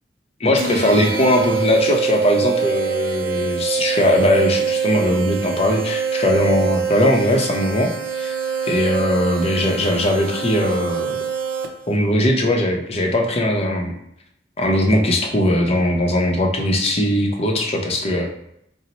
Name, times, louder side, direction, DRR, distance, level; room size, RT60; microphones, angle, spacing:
voice 1, 0.4-8.3 8.6-11.1 11.9-13.9 14.6-18.3, left 1 dB, 35° left, 1 dB, 0.6 m, -19 dB
sound 1, 0.6-12.0, right 6 dB, 55° right, 0.5 m, -24 dB
4.1 x 2.0 x 4.0 m, 0.76 s
head